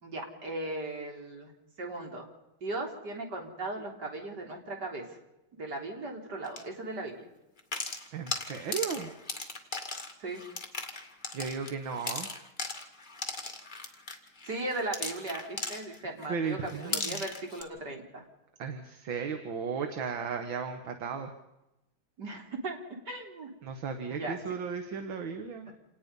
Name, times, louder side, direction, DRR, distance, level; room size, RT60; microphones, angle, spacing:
voice 1, 0.0-1.5 1.8-2.2 2.6-5.1 5.5-7.3 10.2-10.4 14.4-18.2 22.2-23.5 24.1-24.4 25.7-25.8, right 2 dB, 50° right, 1 dB, 4.2 m, -37 dB
sound 1, 6.4-6.6 7.6-16.3 16.6-17.6, left 3 dB, 25° left, 2.2 m, -37 dB
voice 2, 8.1-9.1 11.3-12.3 16.3-17.2 18.6-21.3 23.6-25.7, right 6 dB, 65° right, 6 dB, 2.3 m, -35 dB
28.0 x 19.0 x 5.5 m, 0.95 s
omnidirectional pair, 2.3 m